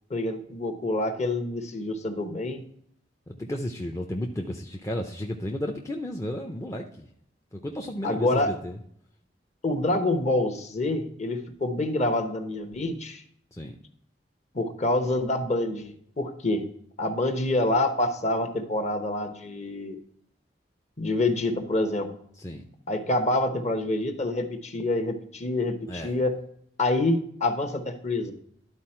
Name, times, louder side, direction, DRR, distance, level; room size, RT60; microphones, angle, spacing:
voice 1, 0.1-2.6 8.0-8.5 9.6-13.2 14.5-16.6 17.0-20.0 21.0-22.1 22.9-26.3 26.8-28.3, left 2 dB, 40° left, 7 dB, 1.0 m, -27 dB
voice 2, 3.3-7.1 7.5-8.8 13.5-13.8 22.4-22.7 25.9-26.2, left 1 dB, 15° left, 1 dB, 0.5 m, -33 dB
11.5 x 4.3 x 4.4 m, 0.67 s
head